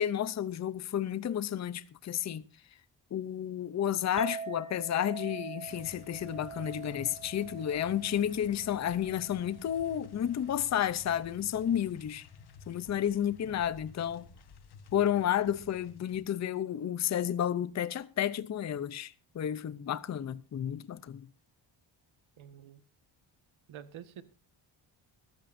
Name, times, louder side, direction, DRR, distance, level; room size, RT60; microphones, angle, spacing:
voice 1, 0.0-2.4 3.1-12.3 12.7-14.3 14.9-21.3, left 10 dB, 35° left, 0.6 m, -31 dB
Chink clink, 4.2-10.5, right 5 dB, 15° right, 0.7 m, -45 dB
sound 1, 5.7-16.2, left 5 dB, 55° left, 1.3 m, -53 dB
voice 2, 22.4-22.8 23.7-24.2, right 9 dB, 85° right, 1.6 m, -48 dB
21.5 x 14.5 x 2.6 m
wide cardioid pair, 165°, 46 cm